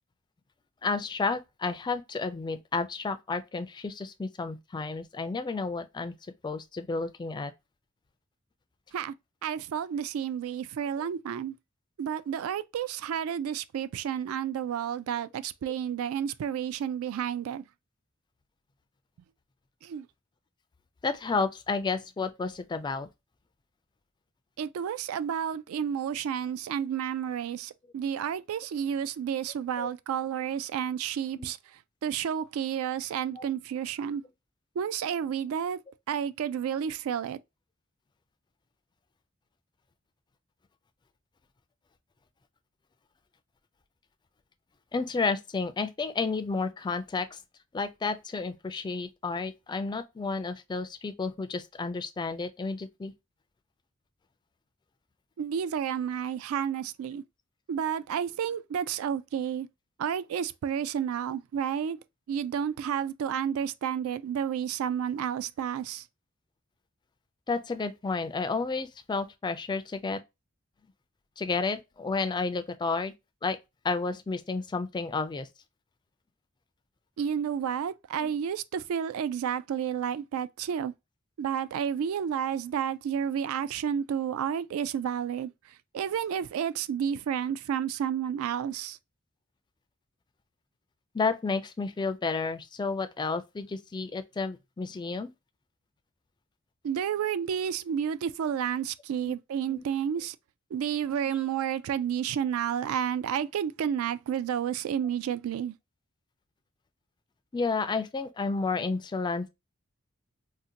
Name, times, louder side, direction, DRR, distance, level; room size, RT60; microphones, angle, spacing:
voice 1, 0.8-6.1 6.4-7.5 21.0-23.1 29.8-29.9 31.3-31.5 33.4-33.5 44.9-47.4 47.7-53.1 67.5-70.2 71.4-73.1 73.4-73.6 73.8-75.5 78.2-78.3 91.1-95.3 99.2-99.3 99.7-99.8 107.5-109.5, left 4 dB, 20° left, 0.3 m, -31 dB
voice 2, 9.4-11.5 12.0-17.6 19.8-20.1 24.6-31.6 32.0-34.2 34.8-35.8 36.1-37.4 55.4-57.2 57.7-59.7 60.0-62.0 62.3-66.0 77.2-80.9 81.4-85.5 85.9-89.0 96.8-100.4 100.7-105.7, right 8 dB, 75° right, 0.3 m, -31 dB
3.8 x 2.1 x 2.7 m
head